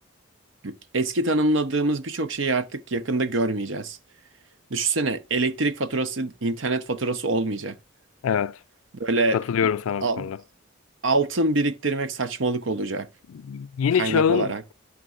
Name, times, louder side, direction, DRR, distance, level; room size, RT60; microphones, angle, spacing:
voice 1, 0.6-4.0 4.7-7.8 9.0-9.4 10.0-10.3 11.0-13.1 14.0-14.6, right 2 dB, 65° right, 0.8 m, -25 dB
voice 2, 8.2-8.6 9.3-10.4 13.3-14.5, left 7 dB, 85° left, 0.4 m, -24 dB
12.5 x 6.0 x 2.4 m
head